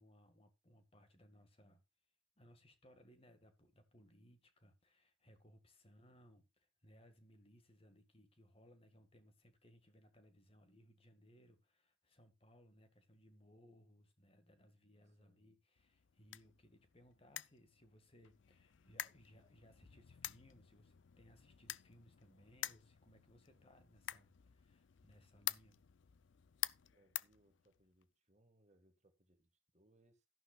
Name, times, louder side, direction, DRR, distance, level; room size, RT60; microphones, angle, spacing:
voice 1, 0.0-1.8 2.4-25.8, equal, 25° left, 1.8 m, -66 dB
voice 2, 15.0-15.6 23.5-23.8 26.8-30.3, right 1 dB, 35° right, 1.7 m, -74 dB
sound 1, 15.8-28.0, left 14 dB, 60° left, 0.4 m, -49 dB
12.5 x 11.0 x 2.4 m
head